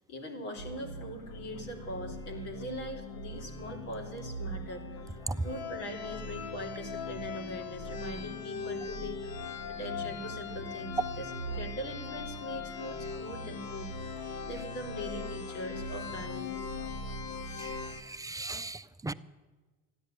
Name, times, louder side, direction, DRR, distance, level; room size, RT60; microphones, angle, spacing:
voice 1, 0.1-5.2 5.4-9.3 9.7-16.7, equal, 85° left, 0 dB, 3.2 m, -41 dB
sound 1, 0.6-18.0, left 3 dB, 70° left, 1.5 m, -40 dB
voice 2, 17.5-19.1, right 2 dB, 10° right, 12 dB, 0.4 m, -37 dB
13.0 x 10.5 x 9.0 m, 1.3 s
supercardioid pair, 85°, 36 cm